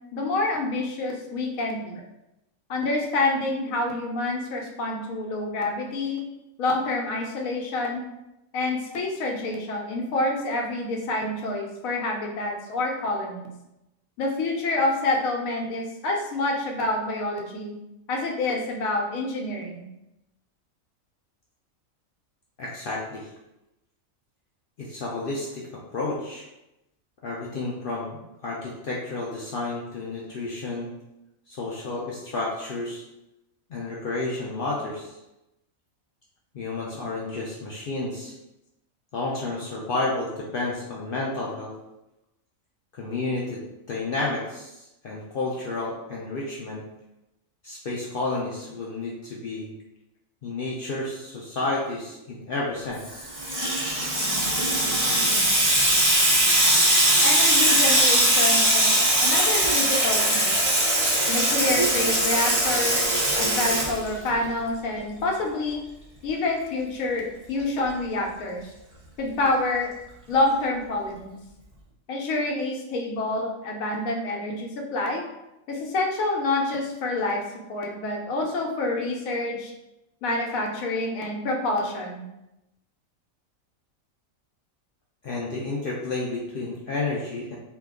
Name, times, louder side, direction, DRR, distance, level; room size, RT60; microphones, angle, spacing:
voice 1, 0.1-2.0 2.7-6.2 6.6-8.0 8.5-13.5 14.2-17.8 18.1-19.9 57.2-58.9 59.2-60.5 61.3-65.8 66.2-68.7 69.2-69.9 70.3-71.3 72.1-75.2 75.7-77.4 77.7-79.7 80.2-82.3, left 2 dB, 90° left, 1 dB, 1.1 m, -27 dB
voice 2, 22.6-23.3 24.8-25.7 25.9-26.5 27.2-30.9 31.5-33.0 33.7-35.2 36.5-38.3 39.1-41.7 43.0-43.6 43.9-46.8 47.6-49.7 50.4-53.3 85.2-87.6, left 2 dB, 65° left, -4 dB, 0.5 m, -31 dB
Water tap faucet / Sink (filling or washing), 53.0-64.5, right 1 dB, 25° right, 0.4 m, -21 dB
2.8 x 2.3 x 3.5 m, 0.92 s
omnidirectional pair, 1.4 m